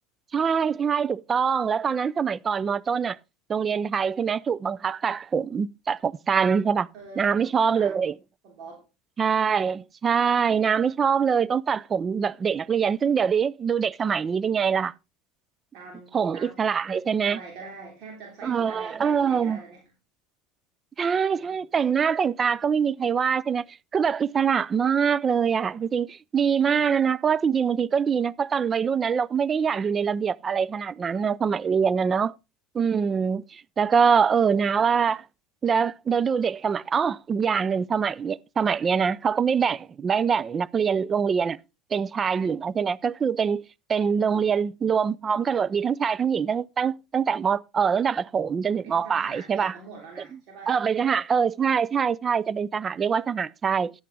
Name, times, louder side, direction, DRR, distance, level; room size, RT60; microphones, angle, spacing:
voice 1, 0.3-3.2 3.5-6.9 7.2-8.1 9.2-14.9 16.1-17.4 18.4-19.6 21.0-23.6 23.9-32.3 32.7-35.2 35.6-41.6 41.9-43.6 43.9-49.7 50.7-53.9, right 6 dB, 30° right, 0.4 m, -24 dB
voice 2, 6.9-7.9 8.4-8.8 15.7-16.9 17.2-19.9 48.8-50.7, right 4 dB, 55° right, 3.3 m, -44 dB
10.5 x 8.4 x 3.4 m
hypercardioid pair, 85°, 0 cm